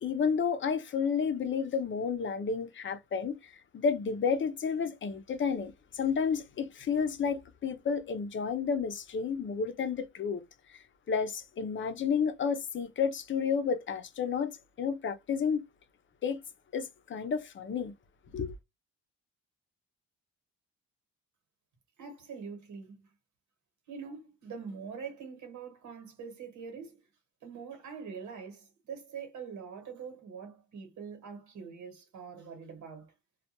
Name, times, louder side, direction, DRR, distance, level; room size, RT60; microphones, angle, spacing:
voice 1, 0.0-3.4 3.7-10.4 11.1-15.6 16.2-16.4 16.7-17.9 18.3-18.5, left 6 dB, 40° left, 0.6 m, -31 dB
voice 2, 22.0-23.0 23.9-27.0 27.4-33.1, right 6 dB, 75° right, 1.3 m, -44 dB
2.4 x 2.1 x 2.8 m
cardioid pair, 90°, 30 cm